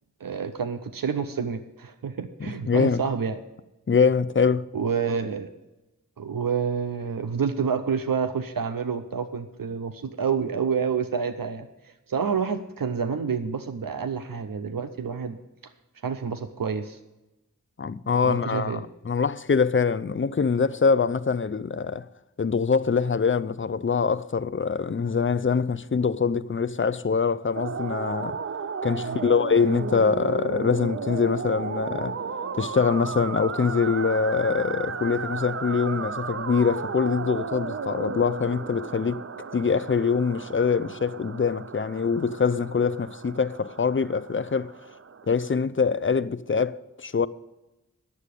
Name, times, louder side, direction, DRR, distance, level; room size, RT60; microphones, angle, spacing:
voice 1, 0.2-3.4 4.7-5.5 6.2-15.4 15.6-15.7 16.0-17.0 18.2-18.8 29.0-29.3, right 6 dB, 90° right, 0.6 m, -28 dB
voice 2, 2.4-3.0 3.9-4.7 17.8-18.8 19.1-22.1 22.4-28.4 28.8-32.2 32.6-39.2 39.5-44.7 45.3-47.3, left 5 dB, 40° left, 0.4 m, -24 dB
sound 1, 27.5-45.6, right 5 dB, 45° right, 0.5 m, -34 dB
9.8 x 7.5 x 8.3 m
wide cardioid pair, 40°, 33 cm